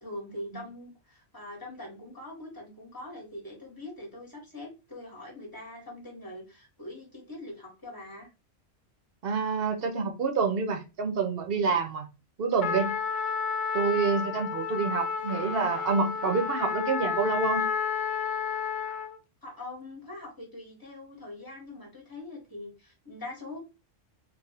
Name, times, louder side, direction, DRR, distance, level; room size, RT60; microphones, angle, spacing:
voice 1, 0.0-8.3 19.4-23.6, left 1 dB, 15° left, -2 dB, 1.4 m, -43 dB
voice 2, 9.2-12.1 12.4-12.9 13.7-17.6, right 5 dB, 55° right, 5 dB, 0.8 m, -27 dB
Trumpet, 12.6-19.2, left 6 dB, 65° left, 0.4 m, -31 dB
3.9 x 2.6 x 2.8 m, 0.28 s
omnidirectional pair, 1.3 m